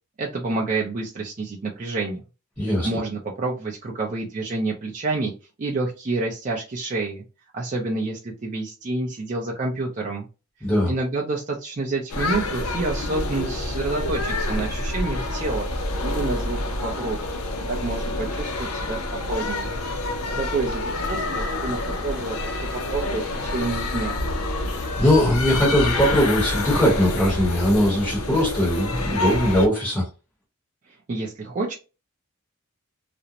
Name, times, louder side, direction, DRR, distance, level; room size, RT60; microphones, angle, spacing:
voice 1, 0.2-2.2 2.6-5.3 5.6-7.2 7.5-10.3 10.9-15.7 16.0-17.2 17.7-19.7 20.3-24.2 31.1-31.8, right 3 dB, 35° right, 0.4 m, -28 dB
voice 2, 2.6-2.9 10.6-10.9 24.6-30.1, equal, 5° left, 0.9 m, -20 dB
sound 1, 12.1-29.7, left 2 dB, 75° left, 0.5 m, -27 dB
2.5 x 2.0 x 2.8 m
head